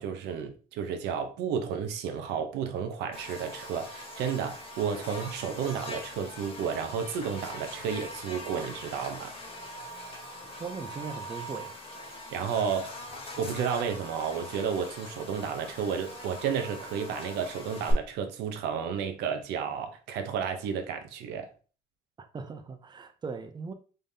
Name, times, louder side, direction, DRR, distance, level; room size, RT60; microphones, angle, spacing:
voice 1, 0.0-9.3 12.3-13.0 13.4-21.5, right 7 dB, 85° right, 0.7 m, -32 dB
Buzz, 3.1-17.9, left 1 dB, 35° left, 1.4 m, -42 dB
voice 2, 10.6-11.7 22.2-23.7, right 5 dB, 25° right, 0.6 m, -39 dB
3.7 x 3.3 x 2.7 m
cardioid pair, 110°, 17 cm